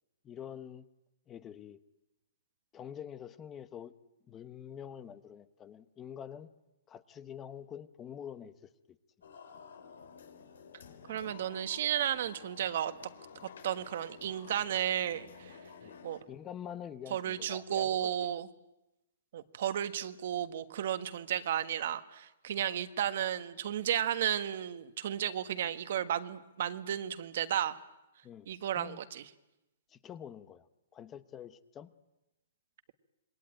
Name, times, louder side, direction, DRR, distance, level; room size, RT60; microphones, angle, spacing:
voice 1, 0.2-0.9 1.3-1.8 2.7-3.9 4.3-6.5 6.9-8.7 15.8-16.0 16.2-18.3 28.2-28.5 28.7-29.0 29.9-30.7 30.9-31.9, left 9 dB, 20° left, 13 dB, 0.9 m, -46 dB
sound 1, 9.2-16.2, left 6 dB, 85° left, 4.0 m, -52 dB
voice 2, 11.1-12.9 13.6-15.6 16.0-16.2 17.1-18.5 19.3-27.8 28.5-29.3, right 10 dB, 60° right, 10 dB, 1.5 m, -33 dB
27.0 x 21.5 x 9.1 m, 0.95 s
hypercardioid pair, 155°, 0 cm